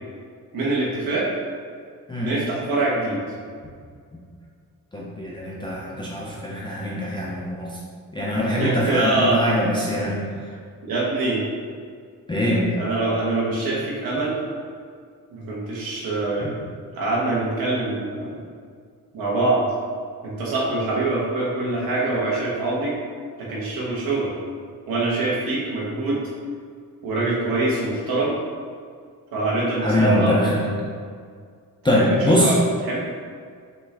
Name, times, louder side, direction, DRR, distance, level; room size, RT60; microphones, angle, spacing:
voice 1, 0.5-1.3 2.2-3.2 8.2-9.4 10.8-11.4 12.8-14.4 15.3-16.5 16.9-18.5 19.1-19.6 20.2-22.9 23.4-24.3 24.9-26.2 27.0-28.3 29.3-30.4 32.0-32.6 32.8-33.0, right 2 dB, 70° right, -6 dB, 1.1 m, -24 dB
voice 2, 4.9-7.8 8.1-10.2 12.3-12.7 16.4-16.5 29.8-30.7 31.8-32.6, equal, 15° left, -6 dB, 0.3 m, -22 dB
5.6 x 2.4 x 3.3 m, 2.1 s
wide cardioid pair, 180°, 36 cm